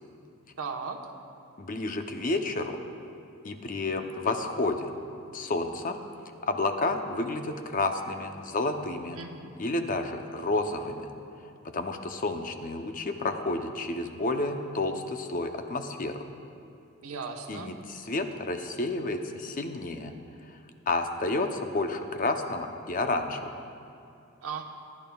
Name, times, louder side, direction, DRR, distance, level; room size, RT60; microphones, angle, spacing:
voice 1, 0.6-1.0 9.1-9.6 17.0-17.7 24.4-24.6, right 5 dB, 90° right, 2 dB, 1.1 m, -36 dB
voice 2, 1.6-2.8 3.4-4.9 5.3-6.0 6.4-9.2 9.6-11.1 11.7-16.2 17.5-20.1 20.5-20.6 20.9-23.5, left 2 dB, 40° left, 6 dB, 0.7 m, -30 dB
20.5 x 11.0 x 2.3 m, 2.6 s
head